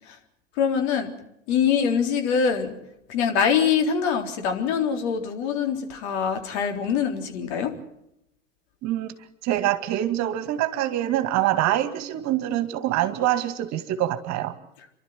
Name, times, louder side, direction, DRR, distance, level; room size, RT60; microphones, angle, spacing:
voice 1, 0.6-1.1 1.5-2.7 3.1-7.7, left 7 dB, 60° left, 5 dB, 3.9 m, -24 dB
voice 2, 9.4-14.5, right 13 dB, 50° right, 11 dB, 2.1 m, -25 dB
29.0 x 12.5 x 9.4 m, 0.81 s
hypercardioid pair, 85°, 37 cm